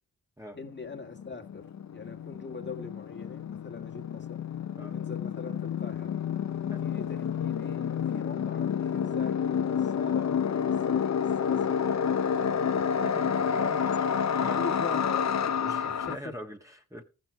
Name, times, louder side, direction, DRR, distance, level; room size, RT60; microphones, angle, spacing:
sound 1, 0.6-0.7 0.9-16.2, left 7 dB, 50° left, 0.6 m, -29 dB
voice 1, 0.6-4.4 4.9-6.2 6.8-12.2 12.5-13.0 13.4-13.8 14.4-16.3, left 4 dB, 30° left, 1.8 m, -42 dB
voice 2, 13.0-13.7 14.0-14.1 14.4-14.6 15.6-17.0, equal, 10° right, 1.5 m, -43 dB
14.5 x 6.4 x 4.7 m
cardioid pair, 50°, 36 cm